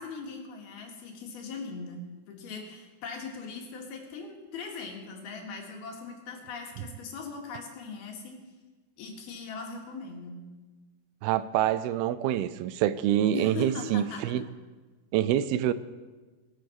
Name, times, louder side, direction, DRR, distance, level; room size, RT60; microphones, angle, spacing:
voice 1, 0.0-8.4 9.0-10.3 13.3-14.2, left 4 dB, 90° left, 1 dB, 3.9 m, -40 dB
voice 2, 11.2-14.4 15.1-15.7, right 11 dB, 90° right, 15 dB, 2.6 m, -26 dB
22.0 x 7.8 x 6.1 m, 1.3 s
omnidirectional pair, 4.3 m